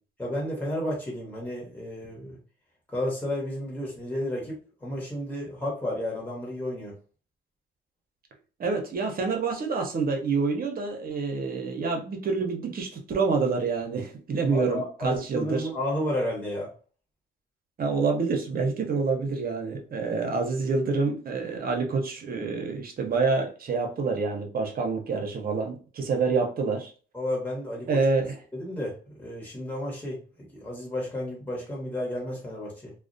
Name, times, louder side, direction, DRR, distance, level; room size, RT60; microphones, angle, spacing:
voice 1, 0.2-2.4 2.9-6.9 14.5-16.7 27.1-28.0 28.5-30.2 30.5-32.9, left 1 dB, 10° left, -4 dB, 1.0 m, -32 dB
voice 2, 8.6-15.7 17.8-26.9 27.9-28.4, right 4 dB, 45° right, 2 dB, 0.7 m, -27 dB
2.3 x 2.1 x 2.5 m, 0.39 s
cardioid pair, 90°, 20 cm